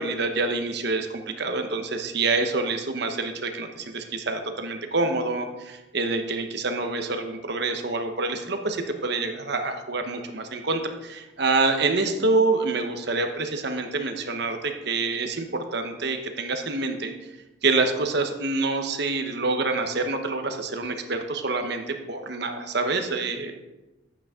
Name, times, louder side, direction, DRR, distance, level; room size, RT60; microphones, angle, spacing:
voice 1, 0.0-17.4 17.6-23.5, right 3 dB, 55° right, 6 dB, 1.0 m, -27 dB
10.5 x 8.5 x 3.7 m, 1.1 s
head